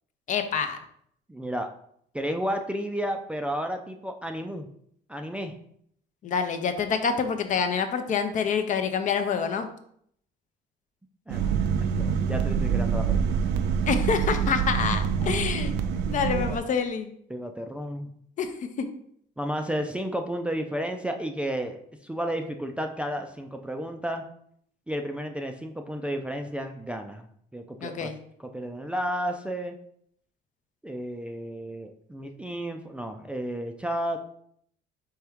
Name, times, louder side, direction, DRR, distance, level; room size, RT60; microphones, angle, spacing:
voice 1, 0.3-0.8 6.2-9.7 13.9-15.7 16.1-17.1 18.4-18.5 18.8-18.9 27.8-28.2, left 6 dB, 50° left, 8 dB, 0.6 m, -27 dB
voice 2, 1.3-1.7 2.1-4.7 5.1-5.5 11.3-11.6 12.0-13.4 15.2-15.6 16.3-16.6 17.3-18.1 19.4-24.2 24.9-27.3 27.5-28.1 28.4-29.8 30.8-34.2, equal, 5° right, 4 dB, 0.4 m, -32 dB
sound 1, 11.3-16.6, right 7 dB, 80° right, 0.4 m, -26 dB
4.4 x 3.5 x 3.5 m, 0.67 s
cardioid pair, 110°, 17 cm